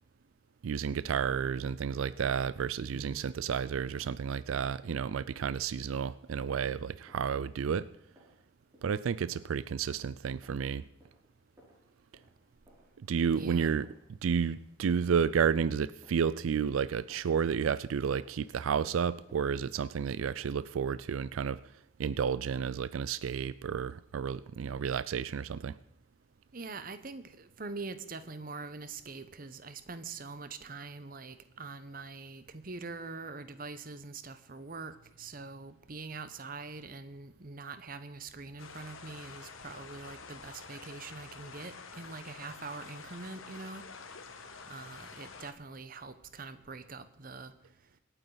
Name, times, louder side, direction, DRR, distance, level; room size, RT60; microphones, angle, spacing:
voice 1, 0.6-7.9 8.8-10.8 13.1-13.9 14.2-21.6 22.0-25.8, right 6 dB, 90° right, 17 dB, 0.4 m, -31 dB
voice 2, 2.9-3.3 13.3-13.7 26.5-43.8 44.7-47.5, right 3 dB, 45° right, 12 dB, 0.9 m, -44 dB
sound 1, 6.4-20.5, equal, 15° right, 5.5 m, -65 dB
sound 2, 38.6-45.5, left 5 dB, 90° left, 1.3 m, -48 dB
25.0 x 9.1 x 3.9 m, 0.82 s
head